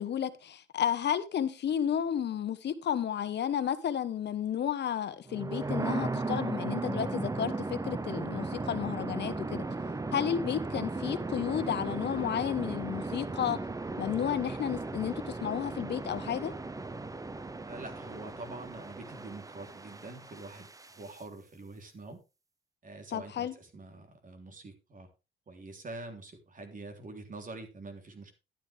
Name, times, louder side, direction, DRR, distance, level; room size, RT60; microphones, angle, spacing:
voice 1, 0.0-9.6 10.1-13.6 14.0-15.1 15.4-16.5 23.1-23.5, left 9 dB, 60° left, 1.3 m, -32 dB
sound 1, 5.3-21.2, right 3 dB, 15° right, 0.8 m, -36 dB
voice 2, 17.6-22.2 22.8-25.1 25.5-28.3, right 2 dB, 40° right, 3.3 m, -45 dB
12.0 x 9.4 x 3.5 m
cardioid pair, 90°, 20 cm